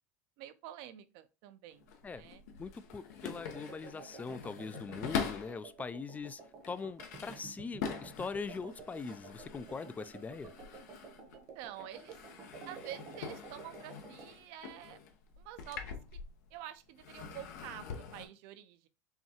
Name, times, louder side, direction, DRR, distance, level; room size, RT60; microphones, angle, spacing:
voice 1, 0.4-2.4 11.5-12.2 12.7-15.0 15.4-15.9 16.5-18.9, right 12 dB, 65° right, 0.6 m, -48 dB
sound 1, 1.7-5.7 6.2-11.5 11.8-16.6 17.0-18.3, left 6 dB, 80° left, 0.8 m, -44 dB
voice 2, 2.6-6.4 6.7-10.5, left 5 dB, 15° left, 0.3 m, -42 dB
sound 2, 3.5-14.3, right 5 dB, 45° right, 0.9 m, -52 dB
5.6 x 2.3 x 2.9 m
supercardioid pair, 100°, 9 cm